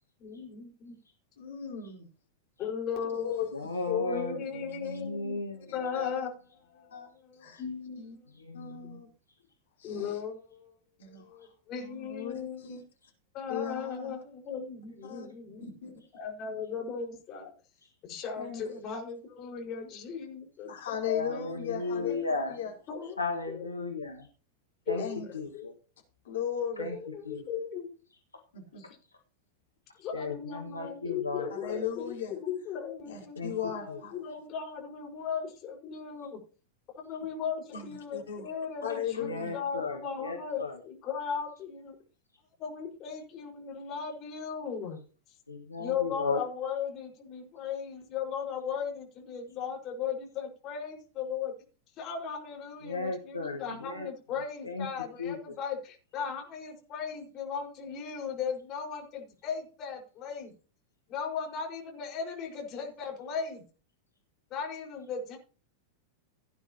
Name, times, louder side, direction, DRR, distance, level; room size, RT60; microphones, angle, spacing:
voice 1, 0.2-0.9 2.6-3.3 4.1-5.4 5.7-6.3 7.2-8.0 9.8-10.8 11.1-12.6 13.3-15.7 16.1-17.5 18.0-20.7 21.1-21.5 21.9-22.2 22.9-23.4 24.9-25.6 26.8-27.9 30.0-33.4 33.7-36.4 36.9-40.6 40.9-41.9 42.6-45.0 45.8-51.5 52.0-60.5 61.1-63.6 64.5-65.4, left 6 dB, 35° left, 5.1 m, -37 dB
voice 2, 1.4-2.0 3.1-5.0 5.7-6.3 6.9-7.1 7.4-7.6 8.0-8.2 8.5-9.1 9.8-10.2 11.0-11.5 11.8-12.8 13.5-14.2 15.0-15.3 15.6-15.9 18.4-18.7 20.6-22.7 23.0-23.1 25.0-25.3 26.2-26.9 28.5-28.8 31.5-32.4 33.1-34.1 37.7-38.5 38.8-39.6, left 8 dB, 60° left, 4.2 m, -37 dB
voice 3, 3.5-6.2 6.7-7.1 8.3-9.0 17.8-17.9 21.2-22.6 23.2-24.3 24.9-25.0 25.3-25.7 26.8-27.0 27.2-27.4 30.1-31.5 33.3-33.5 33.9-34.0 39.2-40.8 45.5-46.5 52.8-54.1 54.6-54.9 55.2-55.5, left 3 dB, 80° left, 1.7 m, -36 dB
17.0 x 9.9 x 3.0 m
figure-of-eight pair, 90°, 0 cm